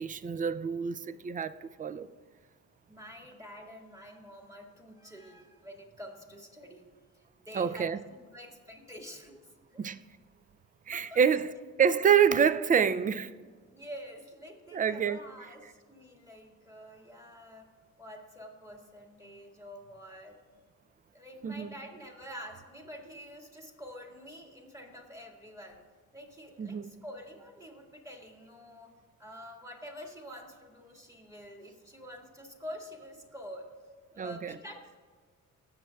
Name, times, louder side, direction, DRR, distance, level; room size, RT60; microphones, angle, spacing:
voice 1, 0.0-2.1 7.5-8.0 9.8-10.0 10.9-11.5 11.8-13.3 14.7-15.2 21.4-21.7 26.6-26.9 34.2-34.6, right 7 dB, 30° right, 0.4 m, -27 dB
voice 2, 2.9-6.9 7.1-7.9 8.3-9.9 10.9-11.2 13.7-17.7 18.0-20.4 21.1-25.9 26.1-28.9 29.2-33.7 34.1-35.0, equal, 10° right, 1.8 m, -47 dB
16.0 x 7.3 x 2.3 m
cardioid pair, 90°, 30 cm